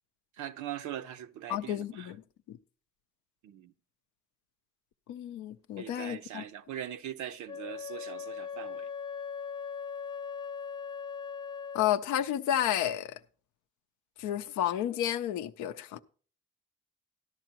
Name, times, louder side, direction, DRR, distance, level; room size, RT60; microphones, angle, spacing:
voice 1, 0.4-2.1 3.4-3.7 5.8-8.9, right 11 dB, 80° right, 0.5 m, -41 dB
voice 2, 1.5-2.2 2.5-2.6 5.1-6.4 11.7-13.2 14.2-16.0, left 11 dB, 90° left, 0.5 m, -31 dB
Wind instrument woodwind instrument, 7.5-12.0, left 6 dB, 15° left, 0.4 m, -39 dB
13.0 x 11.0 x 2.9 m
supercardioid pair, 50°, 29 cm